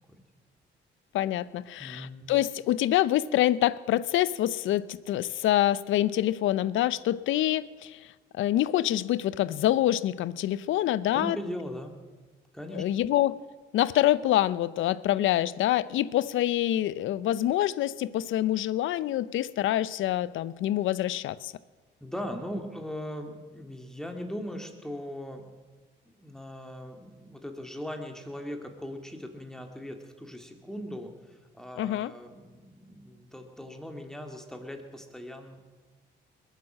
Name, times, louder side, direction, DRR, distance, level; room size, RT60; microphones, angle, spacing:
voice 1, 1.1-8.1 8.3-11.4 12.7-13.4 13.7-21.5 31.8-32.1, left 13 dB, 80° left, 18 dB, 0.6 m, -26 dB
voice 2, 1.8-2.3 11.1-11.9 12.5-12.8 22.0-25.5 26.1-35.6, equal, 5° left, 4 dB, 2.4 m, -39 dB
21.0 x 9.3 x 7.4 m, 1.3 s
cardioid pair, 90°, 20 cm